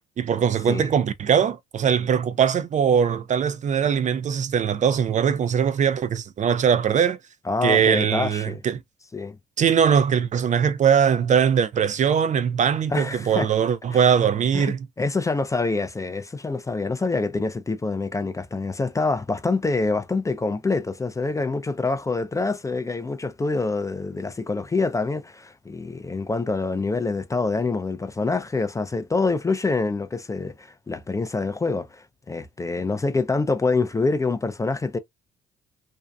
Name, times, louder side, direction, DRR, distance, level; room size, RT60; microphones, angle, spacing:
voice 1, 0.2-7.2 7.6-8.8 9.6-14.9, right 7 dB, 40° right, 0.4 m, -21 dB
voice 2, 7.5-8.6 9.1-9.4 12.9-13.5 13.9-14.1 14.5-35.0, left 3 dB, 15° left, 0.4 m, -26 dB
2.6 x 2.2 x 2.3 m
supercardioid pair, 65°, 19 cm